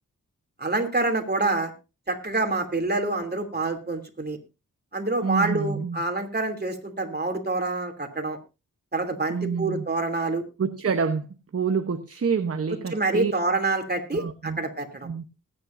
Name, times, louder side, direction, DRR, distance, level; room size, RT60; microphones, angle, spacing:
voice 1, 0.6-1.7 2.1-4.4 4.9-8.4 8.9-10.4 12.9-15.1, right 2 dB, 30° right, 4 dB, 3.0 m, -27 dB
voice 2, 5.2-6.0 9.3-9.8 10.6-11.3 11.5-13.3 14.1-14.6 15.0-15.2, right 5 dB, 45° right, 8 dB, 1.0 m, -27 dB
20.0 x 9.8 x 2.6 m, 0.29 s
cardioid pair, 65°, 32 cm